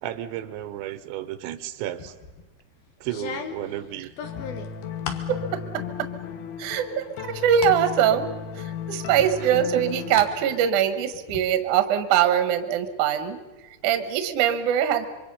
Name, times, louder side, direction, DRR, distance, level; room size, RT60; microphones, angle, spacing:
voice 1, 0.0-2.2 3.0-4.1 9.4-9.9, right 12 dB, 85° right, 12 dB, 3.3 m, -33 dB
sound 1, 2.0-2.4 3.1-5.3 5.8-6.3 6.7-7.8 8.2-8.3 9.2-10.3 10.6-11.4, left 7 dB, 60° left, 3.1 m, -37 dB
sound 2, 4.2-10.7, left 7 dB, 80° left, 3.6 m, -35 dB
voice 2, 6.6-8.3 8.6-13.4 13.8-15.1, right 9 dB, 65° right, 9 dB, 2.2 m, -22 dB
27.0 x 24.0 x 5.6 m, 1.2 s
omnidirectional pair, 5.2 m